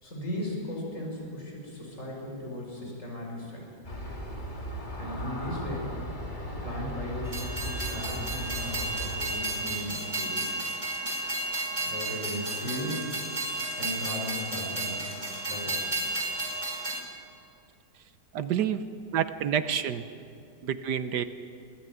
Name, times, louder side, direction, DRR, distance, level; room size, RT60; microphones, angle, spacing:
voice 1, 0.0-3.7 5.0-6.0 6.5-10.6 11.9-13.1 13.8-15.0 15.5-16.2, left 1 dB, 40° left, -1 dB, 5.7 m, -37 dB
Aircraft, 3.8-9.6, equal, 25° left, 2.7 m, -37 dB
Train, 7.3-17.0, right 2 dB, 15° right, 3.0 m, -33 dB
voice 2, 18.3-18.8 19.1-20.0 20.6-21.2, right 9 dB, 65° right, 11 dB, 1.4 m, -28 dB
23.5 x 16.0 x 9.3 m, 2.5 s
omnidirectional pair, 2.0 m